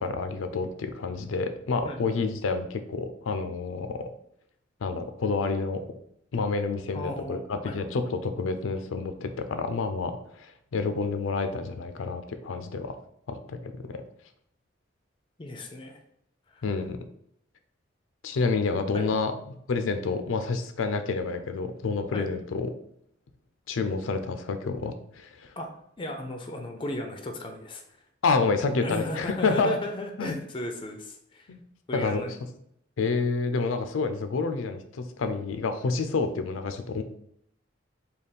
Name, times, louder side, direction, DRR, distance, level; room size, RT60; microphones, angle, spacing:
voice 1, 0.0-4.1 4.8-5.8 6.3-12.9 13.3-13.6 13.9-14.0 16.6-17.0 18.2-19.3 19.7-22.7 23.7-25.5 28.2-29.8 30.2-30.4 31.5-31.6 31.9-32.2 33.0-37.0, left 4 dB, 90° left, 8 dB, 0.4 m, -28 dB
voice 2, 6.9-7.8 15.4-16.0 16.5-16.6 18.9-19.1 22.1-22.3 25.6-25.7 26.0-27.8 28.8-31.5 31.9-32.3, left 1 dB, 25° left, 4 dB, 0.4 m, -35 dB
3.4 x 2.3 x 4.0 m, 0.73 s
head